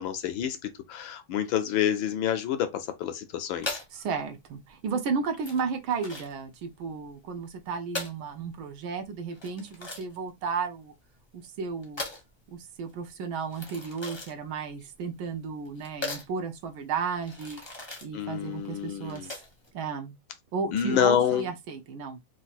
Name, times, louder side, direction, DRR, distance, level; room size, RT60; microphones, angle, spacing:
voice 1, 0.0-3.8 18.1-19.3 20.7-21.5, left 9 dB, 70° left, 1.4 m, -28 dB
sound 1, 3.6-19.7, left 2 dB, 20° left, 0.7 m, -41 dB
voice 2, 3.9-10.9 11.3-12.0 12.5-17.6 18.0-19.3 19.7-20.1 20.5-22.2, right 5 dB, 70° right, 1.6 m, -33 dB
4.1 x 2.6 x 4.1 m
omnidirectional pair, 2.4 m